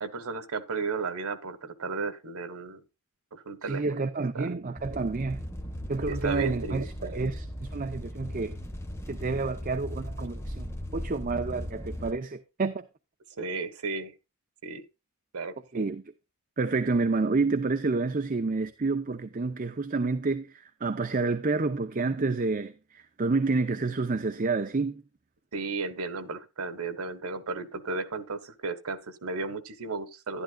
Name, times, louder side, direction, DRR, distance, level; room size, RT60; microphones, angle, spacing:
voice 1, 0.0-2.8 3.3-4.0 4.3-4.5 6.1-7.2 13.3-14.1 14.6-14.8 15.3-15.8 25.5-30.4, right 4 dB, 85° right, 1.4 m, -34 dB
voice 2, 3.6-5.5 5.9-8.6 9.1-12.8 15.7-16.0 16.6-25.0, right 3 dB, 40° right, 0.6 m, -29 dB
sound 1, 4.8-12.1, equal, 10° left, 1.1 m, -37 dB
11.5 x 11.5 x 2.3 m
head